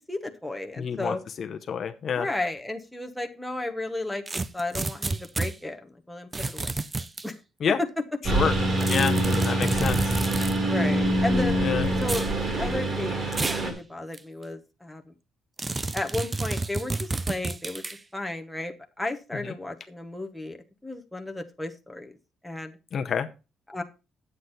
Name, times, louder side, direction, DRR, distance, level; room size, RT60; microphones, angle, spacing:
voice 1, 0.1-1.2 2.1-4.2 4.5-6.8 7.2-7.4 7.8-7.9 9.3-9.4 10.7-11.6 12.0-15.1 15.9-17.8 18.1-20.6 20.8-22.1 22.4-22.8 23.7-23.8, left 2 dB, 5° left, 3 dB, 0.9 m, -33 dB
voice 2, 0.8-2.3 7.6-7.8 8.3-8.5 8.9-10.1 11.6-11.9 19.4-19.5 22.9-23.3, left 7 dB, 40° left, 7 dB, 0.7 m, -28 dB
sound 1, 4.3-5.5 6.3-7.3 8.8-10.6 12.0-12.3 13.3-13.7 14.1-14.2 15.6-18.0, right 3 dB, 15° right, 0.4 m, -30 dB
Engine, 8.2-13.7, right 1 dB, 35° right, 2.2 m, -25 dB
9.4 x 8.0 x 4.0 m, 0.29 s
cardioid pair, 170°, 0 cm